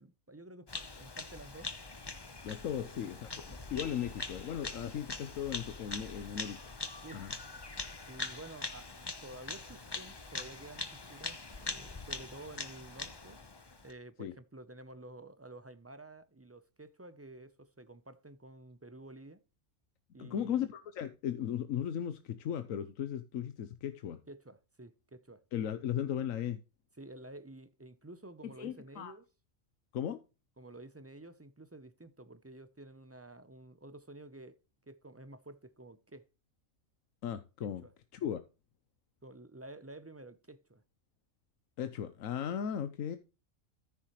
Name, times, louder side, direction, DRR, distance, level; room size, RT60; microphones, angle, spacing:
voice 1, 0.0-1.7 2.7-3.1 3.5-3.6 7.0-7.3 8.1-8.9 9.2-13.4 13.8-19.4 20.1-20.7 24.3-25.4 27.0-29.3 30.6-34.6 34.9-36.3 37.6-37.9 39.2-40.8, right 2 dB, 15° right, 0.5 m, -51 dB
Bird vocalization bird call bird song, 0.7-13.9, left 3 dB, 20° left, 0.8 m, -43 dB
voice 2, 2.4-6.6 7.1-7.3 14.2-14.3 20.2-24.2 25.5-26.6 28.6-29.1 29.9-30.2 37.2-37.8 38.1-38.4 41.8-43.2, left 9 dB, 90° left, 1.2 m, -36 dB
14.0 x 7.0 x 3.1 m
omnidirectional pair, 1.4 m